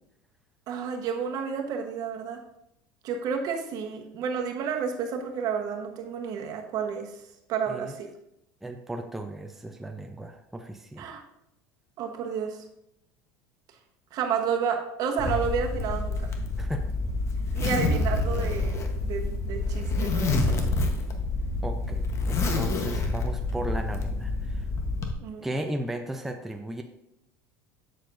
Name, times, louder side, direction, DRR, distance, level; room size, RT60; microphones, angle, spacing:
voice 1, 0.7-2.4 3.0-7.1 7.5-8.1 11.0-11.2 12.0-12.6 14.1-16.3 17.5-20.8 25.2-25.5, right 6 dB, 55° right, 4 dB, 1.1 m, -31 dB
voice 2, 8.6-11.1 16.6-16.8 21.6-24.7 25.4-26.8, right 1 dB, 5° right, 4 dB, 0.5 m, -35 dB
Zipper (clothing), 15.2-25.1, left 2 dB, 35° left, 1.0 m, -28 dB
7.7 x 6.6 x 2.6 m, 0.81 s
supercardioid pair, 100°, 8 cm